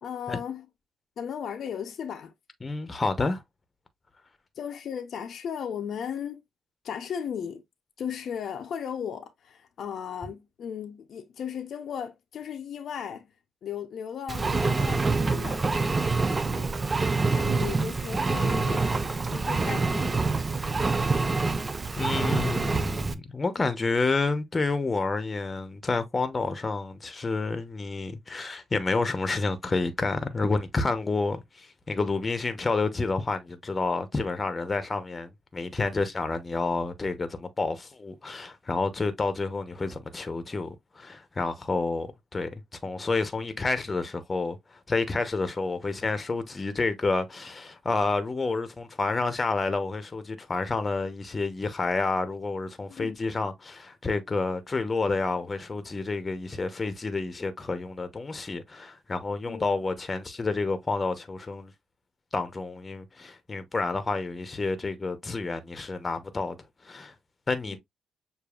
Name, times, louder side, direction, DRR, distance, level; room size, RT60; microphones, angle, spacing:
voice 1, 0.0-0.6 1.2-2.3 4.6-6.4 6.8-7.6 8.0-13.3 13.6-15.9 16.4-18.9 19.3-20.4 52.9-53.2 59.5-59.7 67.7-67.8, left 8 dB, 60° left, 0.7 m, -36 dB
voice 2, 2.6-3.4 22.0-42.1 42.3-42.5 42.8-44.6 44.9-61.7 62.3-66.6 66.8-67.1 67.5-67.8, left 3 dB, 25° left, 0.9 m, -29 dB
Engine, 14.3-23.1, right 3 dB, 25° right, 0.6 m, -26 dB
6.8 x 2.7 x 2.4 m
cardioid pair, 90°, 0 cm